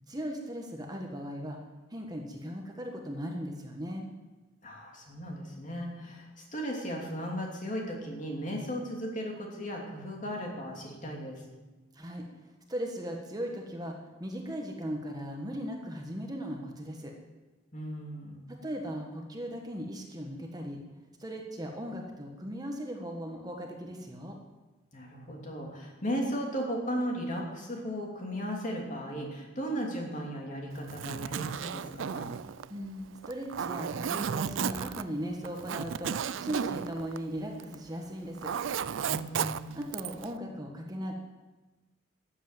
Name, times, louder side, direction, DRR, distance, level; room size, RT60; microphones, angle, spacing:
voice 1, 0.1-1.6 1.9-4.1 11.9-12.3 12.7-17.1 18.5-20.8 21.2-24.4 32.7-36.1 36.4-38.5 39.7-41.1, equal, 20° right, 2 dB, 1.4 m, -38 dB
voice 2, 4.6-11.4 17.7-18.4 24.9-32.3 39.0-39.8, equal, 40° left, -1 dB, 2.9 m, -36 dB
Zipper (clothing), 30.8-37.9 38.2-40.3, right 7 dB, 85° right, 0.4 m, -34 dB
13.5 x 8.4 x 7.5 m, 1.2 s
head